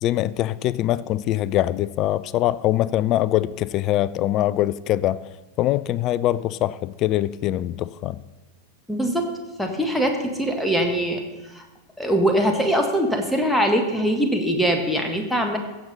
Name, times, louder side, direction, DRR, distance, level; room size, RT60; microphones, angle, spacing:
voice 1, 0.0-5.3 5.6-8.2, left 14 dB, 35° left, 18 dB, 0.3 m, -23 dB
voice 2, 8.9-9.2 9.6-11.2 11.5-11.6 12.0-15.6, equal, 5° left, 3 dB, 1.5 m, -22 dB
15.5 x 7.2 x 4.1 m, 1.1 s
figure-of-eight pair, 90°, 0 cm